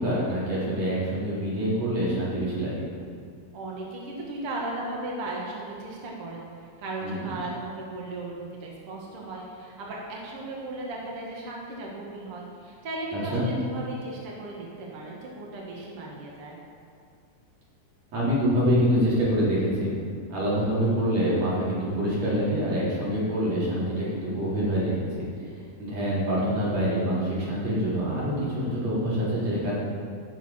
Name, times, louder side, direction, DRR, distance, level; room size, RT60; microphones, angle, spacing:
voice 1, 0.0-2.8 7.0-7.3 13.1-13.5 18.1-19.9 20.3-25.3 25.8-29.8, equal, 35° right, -9 dB, 4.6 m, -26 dB
voice 2, 3.5-16.6, right 2 dB, 90° right, -3 dB, 1.2 m, -36 dB
15.5 x 6.6 x 5.9 m, 2.2 s
omnidirectional pair, 5.5 m